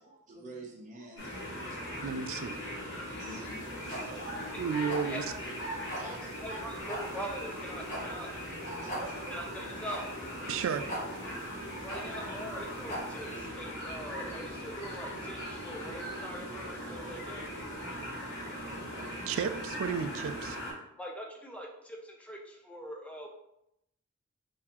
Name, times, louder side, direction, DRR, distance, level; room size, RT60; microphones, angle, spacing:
voice 1, 0.0-2.0 3.2-3.7 3.9-4.6 5.6-6.6 8.6-9.3, right 2 dB, 35° right, -1 dB, 0.8 m, -46 dB
sound 1, 1.2-20.7, equal, 55° left, 1.2 m, -40 dB
voice 2, 2.0-2.6 4.6-5.2 10.5-10.9 19.3-20.6, right 6 dB, 65° right, 10 dB, 0.3 m, -33 dB
sound 2, 3.5-13.4, equal, 35° left, 0.9 m, -42 dB
voice 3, 6.4-8.3 9.3-10.1 11.8-17.5 21.0-23.3, right 1 dB, 5° left, 1 dB, 0.4 m, -43 dB
3.9 x 2.7 x 2.9 m, 0.82 s
head